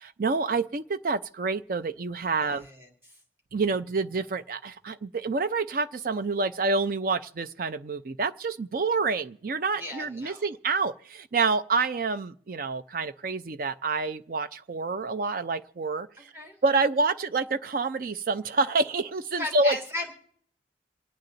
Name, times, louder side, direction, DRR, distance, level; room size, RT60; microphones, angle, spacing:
voice 1, 0.0-2.7 3.5-16.1 16.6-19.8, right 3 dB, 50° right, 0.5 m, -28 dB
voice 2, 2.4-3.2 9.7-10.4 16.3-16.5 19.3-20.1, left 1 dB, 10° right, 2.5 m, -36 dB
27.0 x 9.1 x 3.9 m
head